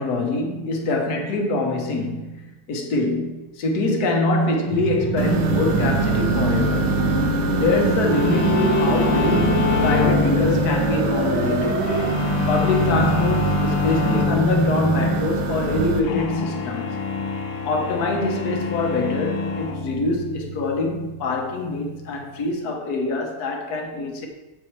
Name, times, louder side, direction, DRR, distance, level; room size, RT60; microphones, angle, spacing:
voice 1, 0.0-6.9 7.6-11.9 12.5-17.0 17.6-24.3, left 2 dB, 50° left, 2 dB, 1.5 m, -24 dB
sound 1, 4.7-12.1, right 1 dB, 35° right, 2.5 m, -25 dB
sound 2, 5.2-16.0, right 4 dB, 75° right, 1.6 m, -25 dB
sound 3, 8.1-22.5, left 6 dB, 80° left, 1.7 m, -27 dB
7.5 x 6.0 x 4.7 m, 1.1 s
omnidirectional pair, 2.4 m